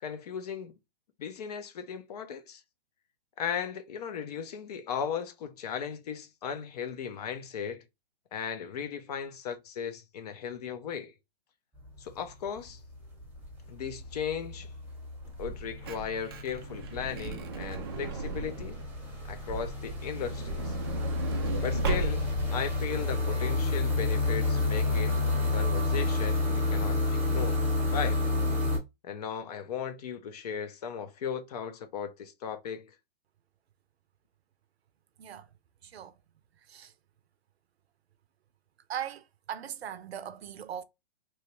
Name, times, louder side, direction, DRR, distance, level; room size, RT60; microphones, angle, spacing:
voice 1, 0.0-0.7 1.2-2.6 3.4-7.8 8.3-11.1 12.0-12.8 13.7-14.7 15.4-18.8 19.3-20.8 21.6-25.2 25.5-27.6 27.9-28.2 29.0-32.9, left 7 dB, 40° left, 0.5 m, -36 dB
sound 1, 11.8-12.3 12.6-28.8, left 3 dB, 5° right, 0.9 m, -30 dB
Truck / Door, 15.4-19.0 20.0-22.5 23.2-23.3 23.5-23.7, right 4 dB, 25° right, 0.3 m, -36 dB
voice 2, 38.9-40.8, right 9 dB, 75° right, 0.6 m, -39 dB
2.9 x 2.3 x 3.0 m
hypercardioid pair, 140°, 31 cm